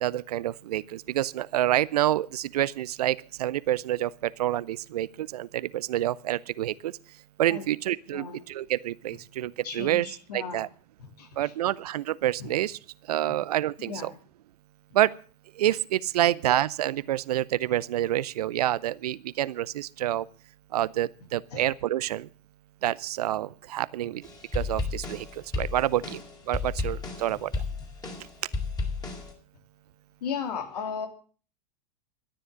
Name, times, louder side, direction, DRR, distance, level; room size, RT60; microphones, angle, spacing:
voice 1, 0.0-6.9 7.4-10.1 10.3-10.7 11.4-12.8 13.1-14.1 14.9-15.1 15.6-20.3 20.7-22.3 22.8-24.2 24.5-25.3 25.6-26.2 26.5-27.5, right 13 dB, 70° right, 21 dB, 0.6 m, -27 dB
voice 2, 9.6-10.7 11.2-11.5 12.4-12.5 13.3-13.4 13.8-14.2 21.5-21.6 30.2-31.1, left 6 dB, 70° left, 6 dB, 2.9 m, -35 dB
sound 1, 24.2-29.3, left 3 dB, 20° left, 4.2 m, -33 dB
13.0 x 10.0 x 7.4 m, 0.41 s
hypercardioid pair, 90°, 21 cm